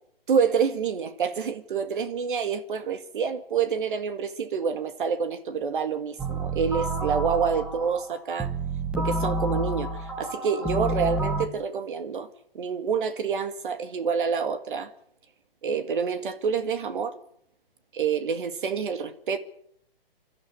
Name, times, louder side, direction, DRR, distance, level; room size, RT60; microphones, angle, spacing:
voice 1, 0.3-8.5 9.0-12.3 12.5-14.9 15.6-17.2 17.9-19.4, right 6 dB, 60° right, 2.1 m, -27 dB
sound 1, 6.2-11.5, right 2 dB, 5° right, 1.4 m, -29 dB
24.0 x 13.0 x 9.7 m
hypercardioid pair, 150°, 29 cm